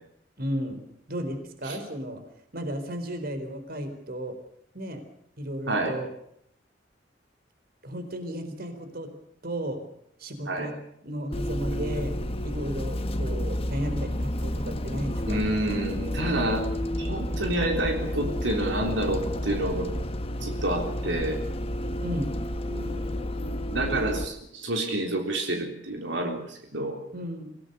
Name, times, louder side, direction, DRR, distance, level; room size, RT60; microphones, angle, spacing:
voice 1, 0.4-0.8 1.1-2.2 2.5-4.4 4.7-5.0 5.4-6.1 7.8-9.1 9.4-9.8 10.2-10.7 11.0-12.1 12.4-15.4 22.0-22.3 27.1-27.5, equal, 55° right, 8 dB, 4.3 m, -34 dB
Bus, 11.3-24.2, equal, 30° left, 1.4 m, -31 dB
voice 2, 15.3-16.7 17.0-19.9 20.4-21.4 22.7-23.1 23.7-27.0, right 1 dB, 75° right, 2 dB, 3.7 m, -29 dB
26.5 x 17.5 x 6.9 m, 0.72 s
head